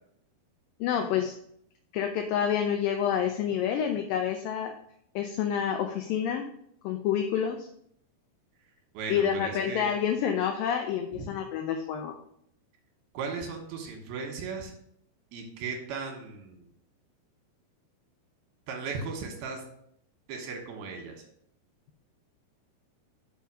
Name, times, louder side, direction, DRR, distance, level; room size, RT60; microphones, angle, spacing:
voice 1, 0.8-1.3 1.9-4.7 5.2-6.5 6.8-7.7 9.1-12.2, left 8 dB, 80° left, 5 dB, 2.1 m, -28 dB
voice 2, 8.9-9.9 11.1-11.3 13.1-14.7 15.3-16.6 18.7-19.6 20.3-21.2, right 5 dB, 80° right, 2 dB, 3.2 m, -36 dB
5.6 x 5.6 x 6.1 m, 0.70 s
omnidirectional pair, 4.4 m